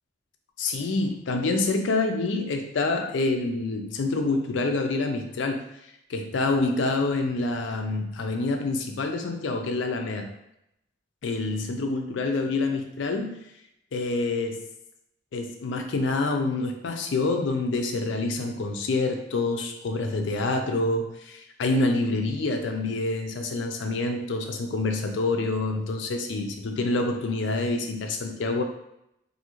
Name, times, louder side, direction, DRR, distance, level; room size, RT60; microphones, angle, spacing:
voice 1, 0.6-5.6 6.1-10.3 11.2-13.4 13.9-14.6 15.3-28.6, left 3 dB, 70° left, 4 dB, 0.4 m, -27 dB
2.6 x 2.4 x 2.9 m, 0.81 s
head